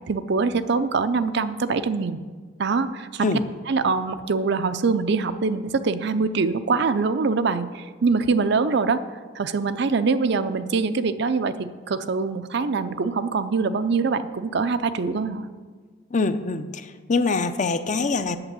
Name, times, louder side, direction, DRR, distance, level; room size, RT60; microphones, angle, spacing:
voice 1, 0.1-2.2 2.6-3.4 3.7-9.0 9.3-15.5, right 4 dB, 60° right, 11 dB, 0.5 m, -24 dB
voice 2, 16.1-18.4, left 3 dB, 40° left, 10 dB, 0.6 m, -24 dB
8.8 x 6.9 x 8.1 m, 1.5 s
head